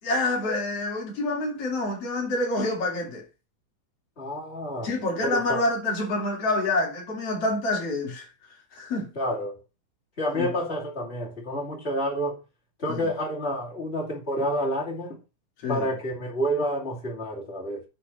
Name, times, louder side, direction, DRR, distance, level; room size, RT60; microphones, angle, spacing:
voice 1, 0.0-3.2 4.8-8.3 8.7-9.1 10.3-10.5 12.9-13.1 15.6-15.9, left 2 dB, 45° left, 3.7 m, -27 dB
voice 2, 4.2-4.9 5.2-5.6 9.2-9.6 10.2-12.4 12.8-15.2 15.7-17.8, equal, 20° left, 2.1 m, -29 dB
8.8 x 4.6 x 5.5 m
omnidirectional pair, 4.1 m